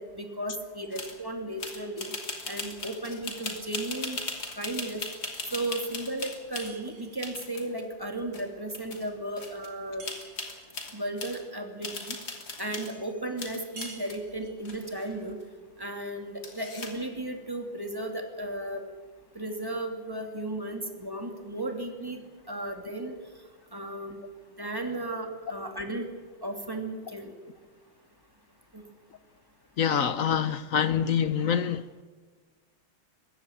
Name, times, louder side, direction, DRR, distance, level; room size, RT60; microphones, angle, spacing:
voice 1, 0.0-2.1 2.5-4.2 4.6-5.0 5.5-10.1 10.9-12.2 12.6-15.4 15.8-18.8 19.3-22.2 22.5-23.1 23.7-24.2 24.6-26.1 26.4-27.3 28.7-28.8, right 1 dB, 10° right, 3 dB, 2.7 m, -35 dB
sound 1, 0.9-1.2 1.6-6.7 7.2-7.8 8.3-8.4 8.7-9.1 9.4-9.7 10.0-11.4 11.8-13.0 13.4-14.2 14.6-15.4 16.4-17.0, left 3 dB, 45° left, 3.4 m, -38 dB
sound 2, 6.5-7.4 10.0-10.8 13.8-14.7, right 3 dB, 55° right, 3.5 m, -48 dB
voice 2, 29.8-32.0, left 8 dB, 65° left, 13 dB, 0.8 m, -26 dB
21.0 x 16.0 x 9.0 m, 1.4 s
omnidirectional pair, 2.3 m